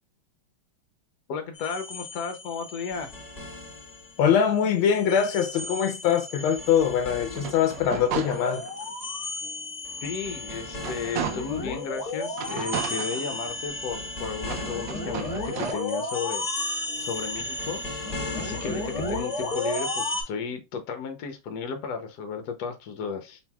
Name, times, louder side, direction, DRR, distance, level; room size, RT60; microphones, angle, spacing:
voice 1, 1.3-3.1 10.0-23.4, left 5 dB, 60° left, 1.1 m, -34 dB
sound 1, 1.5-4.3 4.6-20.2, left 2 dB, 25° left, 1.1 m, -34 dB
voice 2, 4.2-8.6, left 8 dB, 80° left, 1.4 m, -23 dB
sound 2, 7.3-8.9 9.4-9.5 10.0-11.7 12.3-13.8 14.4-15.7, right 7 dB, 70° right, 1.2 m, -35 dB
4.4 x 3.7 x 2.3 m
omnidirectional pair, 2.3 m